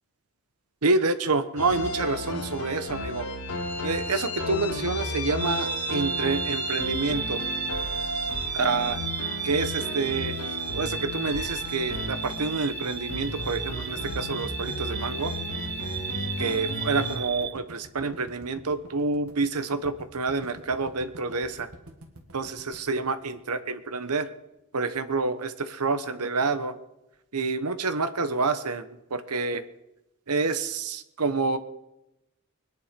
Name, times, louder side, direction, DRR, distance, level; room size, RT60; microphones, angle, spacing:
voice 1, 0.8-3.3 3.8-7.4 8.5-9.0 9.4-10.4 10.7-15.3 16.4-21.7 22.3-24.3 24.7-26.8 27.3-29.6 30.3-31.6, right 3 dB, 90° right, 11 dB, 1.1 m, -28 dB
sound 1, 1.6-17.2, left 2 dB, 90° left, 2.2 m, -34 dB
sound 2, 5.4-17.5, right 9 dB, 45° right, 0.7 m, -34 dB
sound 3, 11.8-24.0, right 1 dB, 70° right, 2.1 m, -48 dB
21.5 x 10.5 x 5.2 m, 0.91 s
head